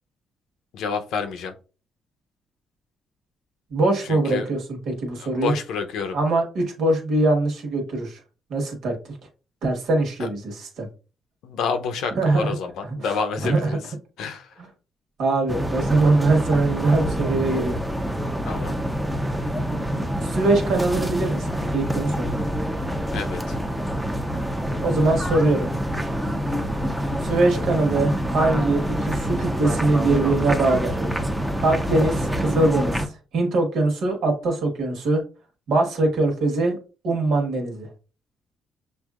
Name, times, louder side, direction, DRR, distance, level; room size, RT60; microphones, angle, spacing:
voice 1, 0.7-1.5 4.0-4.5 5.2-6.2 10.2-10.3 11.4-13.8 14.2-14.5 18.4-18.8 23.1-23.6, left 5 dB, 80° left, 7 dB, 0.7 m, -29 dB
voice 2, 3.7-5.5 6.1-8.2 8.5-8.9 9.6-10.9 12.1-12.5 13.1-13.7 15.2-17.8 20.2-22.4 24.8-25.7 27.2-31.0 31.6-33.0 33.3-35.2 35.7-36.8 37.0-37.9, right 2 dB, 75° right, 3 dB, 1.5 m, -22 dB
sound 1, 15.5-33.1, equal, 5° right, 0.6 m, -26 dB
6.4 x 2.6 x 2.4 m, 0.34 s
cardioid pair, 90°, 0 cm